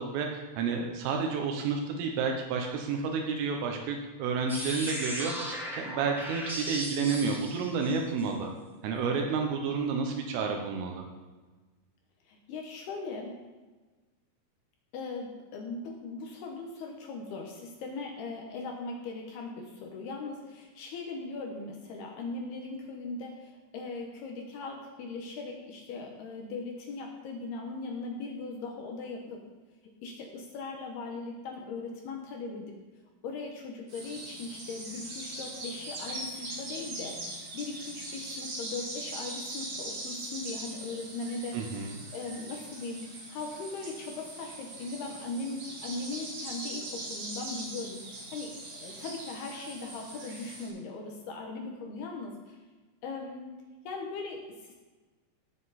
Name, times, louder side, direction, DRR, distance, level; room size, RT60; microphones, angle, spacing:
voice 1, 0.0-8.5 8.8-11.1 41.5-42.0, right 5 dB, 80° right, 2 dB, 3.5 m, -30 dB
sound 1, 4.5-8.2, equal, ahead, 1.0 m, -37 dB
voice 2, 12.3-13.4 14.9-29.4 29.8-32.8 33.2-37.2 37.5-41.6 42.1-52.6 53.0-53.5 53.8-54.7, left 3 dB, 70° left, 1 dB, 2.5 m, -39 dB
sound 2, 33.9-50.7, right 2 dB, 50° right, 5.1 m, -41 dB
17.5 x 7.7 x 4.2 m, 1.3 s
omnidirectional pair, 6.0 m